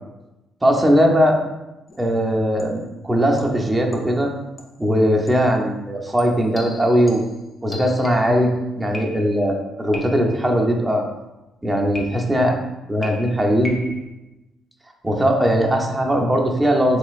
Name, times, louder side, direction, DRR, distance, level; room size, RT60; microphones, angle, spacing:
voice 1, 0.6-1.4 2.0-4.3 4.8-7.2 7.6-8.5 8.8-11.0 11.6-12.6 12.9-13.8 15.0-17.0, equal, 15° right, 0 dB, 0.6 m, -19 dB
sound 1, 1.9-2.1 2.6-2.9 3.4-4.3 4.6-4.8 5.3-5.5 6.2-8.4 8.9-9.5 9.9-10.5 11.9-12.5 13.0-14.1, left 1 dB, 35° left, 0.7 m, -38 dB
3.8 x 2.9 x 2.4 m, 1.0 s
cardioid pair, 75°, 0 cm